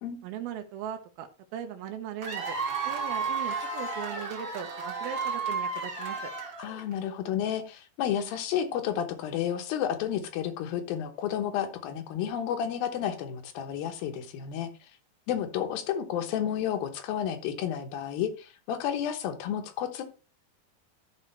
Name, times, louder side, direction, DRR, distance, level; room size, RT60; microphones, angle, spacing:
voice 1, 0.2-2.6 2.8-6.3, right 9 dB, 80° right, 5 dB, 2.7 m, -39 dB
Cheering / Applause / Crowd, 2.2-6.9, right 4 dB, 50° right, 2.1 m, -33 dB
voice 2, 6.6-14.7 15.3-20.0, left 9 dB, 75° left, 7 dB, 2.7 m, -31 dB
13.5 x 5.0 x 3.3 m, 0.33 s
omnidirectional pair, 4.5 m